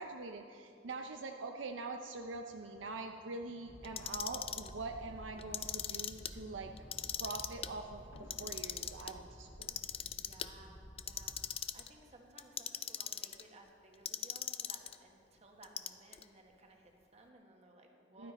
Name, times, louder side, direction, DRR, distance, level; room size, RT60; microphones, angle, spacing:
voice 1, 0.0-6.7 7.1-9.7 18.2-18.3, right 3 dB, 70° right, 4 dB, 0.6 m, -44 dB
voice 2, 0.5-1.0 10.1-18.3, right 2 dB, 35° right, 2 dB, 1.5 m, -60 dB
sound 1, 2.2-10.7, left 2 dB, 85° left, 1.1 m, -64 dB
sound 2, 3.7-11.5, equal, 10° left, 2.4 m, -53 dB
Clock, 3.8-4.7 5.4-6.3 6.8-7.7 8.2-9.1 9.6-10.5 11.0-11.9 12.4-13.4 14.1-15.0 15.6-16.2, left 9 dB, 30° left, 0.4 m, -39 dB
14.5 x 11.5 x 4.2 m, 2.4 s
head